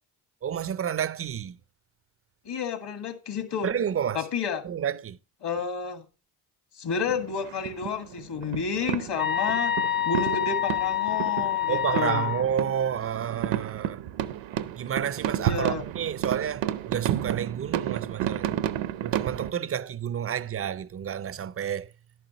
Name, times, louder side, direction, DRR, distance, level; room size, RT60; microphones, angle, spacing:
voice 1, 0.4-1.6 3.6-4.3 4.6-5.2 11.7-14.0 14.7-18.6 19.0-21.9, right 9 dB, 30° right, 0.5 m, -30 dB
voice 2, 2.5-3.7 4.1-4.6 5.4-6.0 6.7-9.8 10.0-12.3 15.4-15.8, left 6 dB, 55° left, 1.8 m, -31 dB
sound 1, 7.0-19.5, right 11 dB, 70° right, 0.8 m, -32 dB
sound 2, 9.2-12.4, left 10 dB, 20° left, 0.7 m, -27 dB
11.0 x 9.1 x 2.9 m
supercardioid pair, 75°, 48 cm